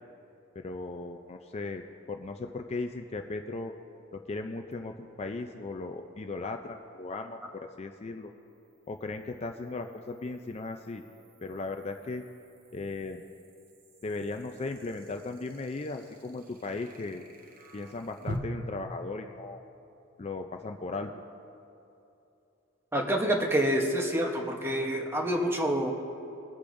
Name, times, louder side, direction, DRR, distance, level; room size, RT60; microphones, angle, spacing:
voice 1, 0.6-3.7 4.3-8.3 8.9-11.0 11.4-12.2 12.7-13.2 14.0-17.2 17.7-19.6 20.2-21.1, left 3 dB, 30° left, 5 dB, 0.4 m, -37 dB
sound 1, 4.7-4.8 8.2-18.4, equal, 45° right, 0.9 m, -49 dB
voice 2, 22.9-25.9, right 1 dB, 10° right, 2 dB, 0.9 m, -27 dB
22.5 x 8.3 x 2.6 m, 2.8 s
head